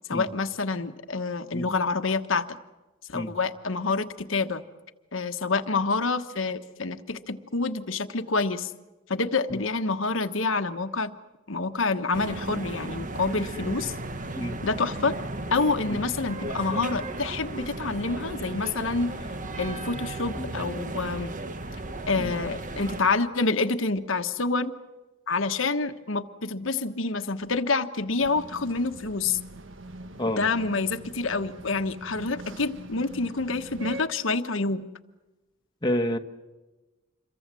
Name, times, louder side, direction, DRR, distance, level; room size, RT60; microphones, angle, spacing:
voice 1, 0.1-2.6 3.1-4.6 5.1-8.7 9.1-11.1 11.5-13.9 14.6-15.1 15.5-19.1 19.6-21.3 22.1-24.7 25.3-29.4 30.4-34.9, left 3 dB, 75° left, 7 dB, 1.2 m, -27 dB
sound 1, 12.1-23.0, right 2 dB, 40° right, 1.3 m, -35 dB
sound 2, 28.2-34.0, right 1 dB, 65° right, 1.5 m, -43 dB
voice 2, 35.8-36.2, left 1 dB, 20° left, 5 dB, 1.2 m, -28 dB
27.5 x 23.0 x 7.6 m, 1.1 s
head